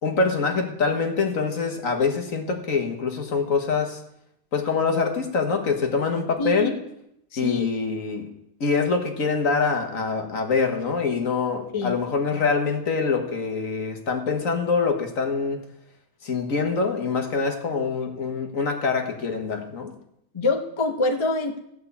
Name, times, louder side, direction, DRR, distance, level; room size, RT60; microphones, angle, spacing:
voice 1, 0.0-4.0 4.5-6.8 7.4-8.3 8.6-15.7 16.2-19.9, left 4 dB, 60° left, 4 dB, 1.9 m, -25 dB
voice 2, 6.4-6.7 7.3-7.7 11.7-11.9 20.3-21.6, left 2 dB, 20° left, 3 dB, 1.1 m, -25 dB
15.0 x 5.8 x 8.4 m, 0.78 s
omnidirectional pair, 1.6 m